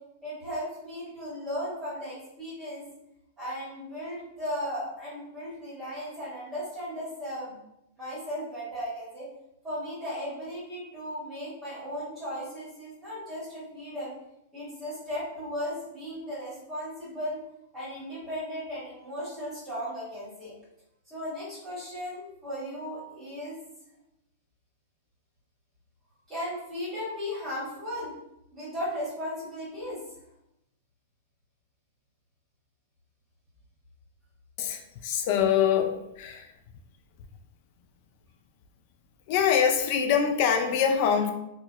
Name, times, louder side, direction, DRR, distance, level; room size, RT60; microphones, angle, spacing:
voice 1, 0.2-2.8 3.4-7.6 8.0-9.3 9.6-14.1 14.5-17.4 17.7-20.5 21.1-23.6 26.3-28.1 28.5-30.0, equal, 15° right, -9 dB, 1.4 m, -36 dB
voice 2, 34.6-36.5 39.3-41.3, left 8 dB, 50° left, 6 dB, 0.3 m, -24 dB
2.6 x 2.1 x 2.3 m, 0.83 s
hypercardioid pair, 130°, 0 cm